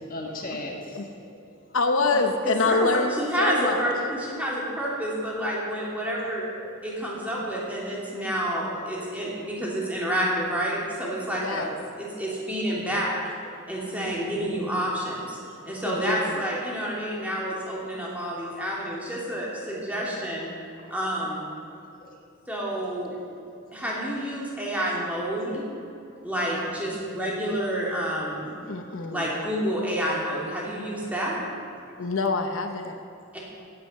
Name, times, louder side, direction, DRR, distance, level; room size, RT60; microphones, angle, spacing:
voice 1, 0.1-1.4 6.5-6.8 9.2-9.4 11.4-11.7 13.9-14.7 15.4-15.8 17.9-18.0 18.3-18.5 18.8-18.9 19.5-19.7 19.9-20.1 20.8-21.0 21.6-22.2 23.0-23.1 23.5-23.6 27.0-27.1 28.1-28.2 30.7-30.8, left 1 dB, 40° left, 1 dB, 1.5 m, -40 dB
voice 2, 1.7-3.9 11.4-11.8 15.8-16.4 28.7-29.3 32.0-32.9, left 3 dB, 65° left, 6 dB, 0.8 m, -26 dB
voice 3, 2.4-2.9 3.2-6.4 6.8-11.6 12.0-13.2 13.7-15.4 15.7-20.5 20.9-21.4 22.5-23.1 23.7-25.6 26.2-28.6 29.1-31.4 33.3-33.4, equal, 5° right, -5 dB, 2.8 m, -29 dB
16.5 x 9.6 x 5.6 m, 2.5 s
head